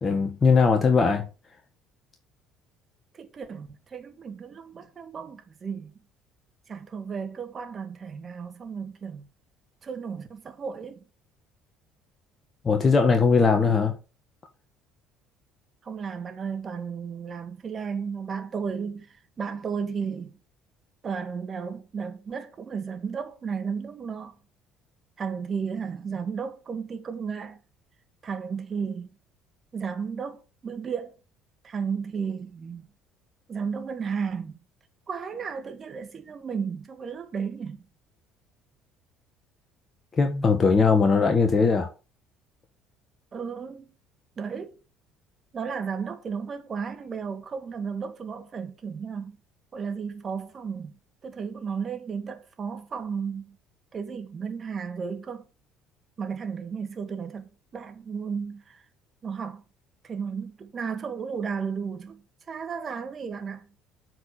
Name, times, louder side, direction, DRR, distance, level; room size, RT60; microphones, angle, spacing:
voice 1, 0.0-1.3 12.6-13.9 40.1-41.9, left 5 dB, 35° left, 1.5 m, -20 dB
voice 2, 3.1-5.9 6.7-9.3 9.8-11.0 15.8-20.4 21.0-24.4 25.2-27.6 28.2-29.1 29.7-31.2 31.6-32.8 33.5-34.6 35.1-37.9 43.3-43.9 44.4-44.8 45.5-49.4 49.7-50.9 51.2-53.6 53.9-55.5 56.2-58.8 59.2-59.6 60.0-63.7, right 6 dB, 40° right, 1.9 m, -34 dB
7.9 x 4.8 x 7.0 m
hypercardioid pair, 55°, 0 cm